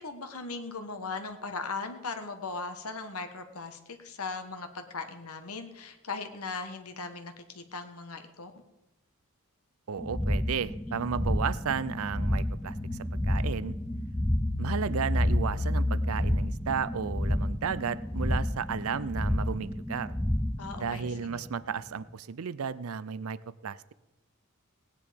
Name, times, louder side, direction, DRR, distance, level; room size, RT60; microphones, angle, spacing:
voice 1, 0.0-8.5 20.6-21.5, left 4 dB, 80° left, 7 dB, 1.4 m, -38 dB
voice 2, 9.9-12.8 13.2-13.8 14.6-20.1 20.8-23.4 23.6-23.9, right 6 dB, 70° right, 17 dB, 0.5 m, -33 dB
sound 1, 10.0-21.8, left 1 dB, 5° left, 0.4 m, -31 dB
sound 2, 12.7-18.4 18.8-18.9, left 1 dB, 35° left, 1.1 m, -33 dB
17.5 x 9.8 x 5.2 m, 0.97 s
head